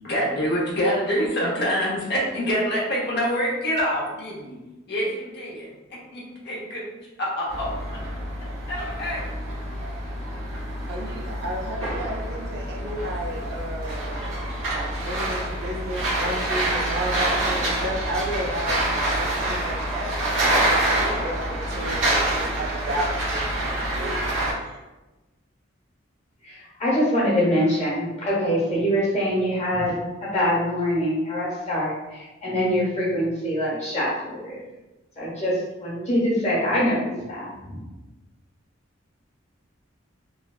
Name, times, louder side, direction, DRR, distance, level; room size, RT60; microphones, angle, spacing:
voice 1, 0.0-4.6 4.9-6.8 7.2-7.7 8.7-9.2, equal, 55° left, -4 dB, 0.8 m, -26 dB
sound 1, 7.5-24.5, right 1 dB, 80° right, 1.0 m, -26 dB
voice 2, 10.9-14.2 14.8-23.4 24.0-24.3 24.6-24.8, right 1 dB, 55° right, 0 dB, 0.5 m, -32 dB
voice 3, 26.4-34.6 35.2-37.7, equal, 35° left, -6 dB, 1.1 m, -24 dB
3.2 x 2.3 x 2.3 m, 1.1 s
head